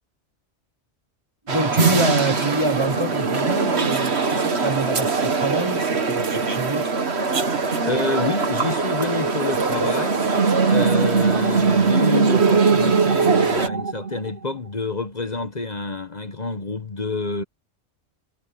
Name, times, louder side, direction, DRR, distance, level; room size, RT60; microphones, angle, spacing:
voice 1, 1.4-7.0, right 1 dB, 25° right, 1.2 m, -26 dB
sound 1, 1.5-13.7, right 4 dB, 65° right, 1.9 m, -22 dB
voice 2, 7.8-10.2 10.6-17.4, left 4 dB, 40° left, 1.1 m, -28 dB
sound 2, 10.1-14.6, right 5 dB, 85° right, 2.9 m, -21 dB
omnidirectional pair, 1.2 m